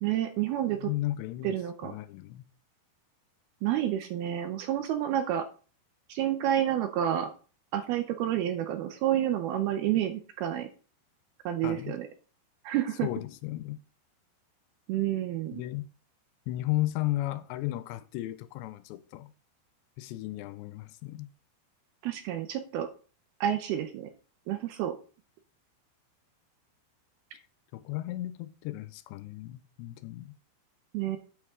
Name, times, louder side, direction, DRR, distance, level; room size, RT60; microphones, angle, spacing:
voice 1, 0.0-0.9 1.4-1.9 3.6-5.5 6.1-7.3 7.7-10.7 11.5-12.1 12.6-13.1 14.9-15.6 22.0-22.9 23.4-24.1 24.5-24.9 30.9-31.2, right 11 dB, 75° right, 2.4 m, -29 dB
voice 2, 0.7-2.5 11.6-12.0 13.0-13.8 15.5-15.8 16.5-19.3 20.0-21.3 27.3-27.4 27.7-30.3, left 16 dB, 80° left, 2.7 m, -34 dB
9.4 x 8.0 x 3.6 m
omnidirectional pair, 5.1 m